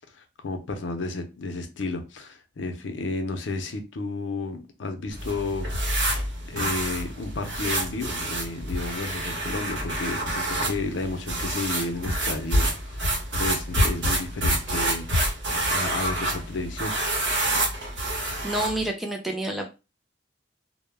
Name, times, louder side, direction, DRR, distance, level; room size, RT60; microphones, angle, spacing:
voice 1, 0.1-5.7 6.5-15.1 15.7-16.9, left 3 dB, 85° left, 6 dB, 0.5 m, -32 dB
sound 1, 5.1-18.9, right 1 dB, 75° right, 0.9 m, -27 dB
voice 2, 18.4-19.7, right 1 dB, ahead, 2 dB, 0.3 m, -28 dB
2.1 x 2.1 x 3.2 m, 0.29 s
head